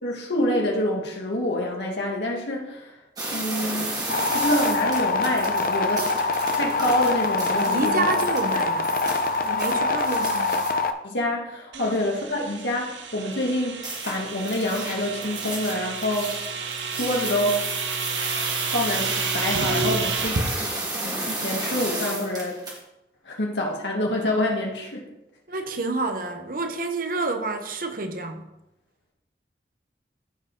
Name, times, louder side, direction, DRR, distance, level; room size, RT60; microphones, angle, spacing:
voice 1, 0.0-2.9 3.3-4.0 4.3-6.1 6.5-8.1 11.0-16.4 16.9-17.7 18.6-22.6 23.3-25.1, left 1 dB, 80° left, -1 dB, 2.2 m, -27 dB
sound 1, 3.2-10.7 13.8-22.8, right 2 dB, 20° right, 1.9 m, -33 dB
sound 2, 4.1-10.9, left 3 dB, 50° left, 0.6 m, -24 dB
voice 2, 7.7-8.9 9.4-10.6 11.7-12.0 25.5-28.5, right 3 dB, 50° right, 7 dB, 0.9 m, -29 dB
sound 3, 11.7-20.5, right 5 dB, 90° right, 0.9 m, -31 dB
14.5 x 5.0 x 3.7 m, 0.90 s
head